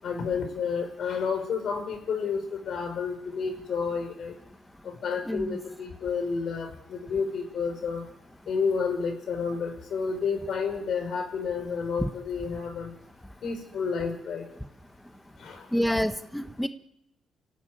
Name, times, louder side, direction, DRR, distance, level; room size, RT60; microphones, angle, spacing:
voice 1, 0.0-4.3 4.8-8.1 8.5-12.9 13.4-14.5 15.4-15.7, left 5 dB, 60° left, 8 dB, 6.2 m, -30 dB
voice 2, 5.3-5.6 12.0-12.1 15.7-16.7, equal, 5° left, 8 dB, 1.2 m, -27 dB
28.5 x 16.0 x 9.8 m, 0.85 s
cardioid pair, 90°, 0 cm